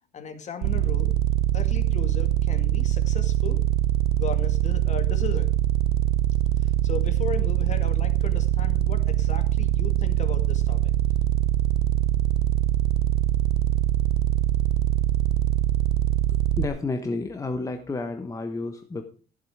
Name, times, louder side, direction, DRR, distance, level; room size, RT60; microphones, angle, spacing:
voice 1, 0.1-1.1 1.5-3.6 4.1-5.5 6.6-10.9, left 6 dB, 45° left, 8 dB, 2.2 m, -36 dB
sound 1, 0.6-16.7, right 13 dB, 75° right, 0.7 m, -23 dB
voice 2, 16.6-19.0, left 3 dB, 20° left, 6 dB, 1.2 m, -30 dB
14.0 x 7.7 x 4.9 m, 0.37 s
cardioid pair, 110°, 17 cm